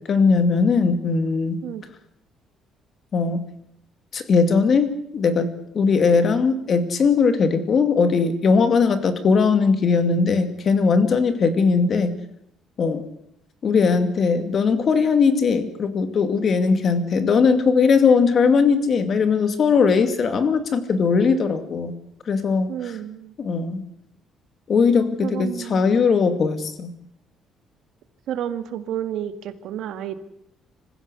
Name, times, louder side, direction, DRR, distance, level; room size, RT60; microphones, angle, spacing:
voice 1, 0.1-1.6 3.1-3.4 4.1-12.1 12.8-13.0 13.6-21.9 22.3-22.7 23.4-23.8 24.7-26.9, left 5 dB, 40° left, 9 dB, 2.4 m, -19 dB
voice 2, 22.7-23.3 25.2-26.0 28.3-30.1, right 10 dB, 70° right, 10 dB, 1.8 m, -30 dB
26.0 x 15.5 x 8.0 m, 0.75 s
cardioid pair, 140°, 0 cm